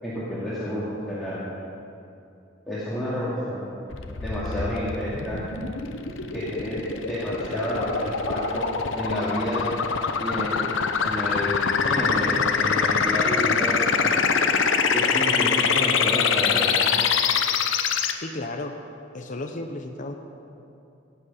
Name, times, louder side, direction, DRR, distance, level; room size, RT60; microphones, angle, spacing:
voice 1, 0.0-1.4 2.7-3.7 4.2-5.4 6.3-6.8 7.1-8.7 9.0-9.6 10.2-10.7 11.0-14.2 14.9-16.9, equal, ahead, -11 dB, 2.3 m, -30 dB
sound 1, 3.9-18.1, left 6 dB, 75° left, 0.8 m, -24 dB
voice 2, 18.1-18.7 19.1-20.1, left 2 dB, 40° left, 4 dB, 0.7 m, -33 dB
17.0 x 7.8 x 5.6 m, 2.7 s
head